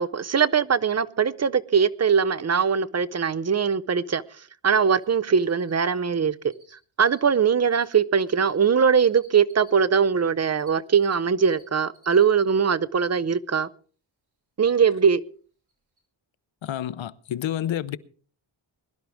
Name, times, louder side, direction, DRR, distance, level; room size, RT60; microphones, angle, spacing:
voice 1, 0.0-4.2 4.6-6.5 7.0-13.7 14.6-15.2, right 6 dB, 35° right, 0.6 m, -21 dB
Cricket, 4.9-5.1 5.4-6.7 7.0-9.7 10.2-11.6 11.9-12.2 12.6-12.7 15.2-15.3 15.7-15.8 16.0-16.1, right 1 dB, 50° right, 5.9 m, -56 dB
voice 2, 16.6-18.0, left 11 dB, 65° left, 0.8 m, -29 dB
21.5 x 11.5 x 3.5 m
cardioid pair, 85°, 49 cm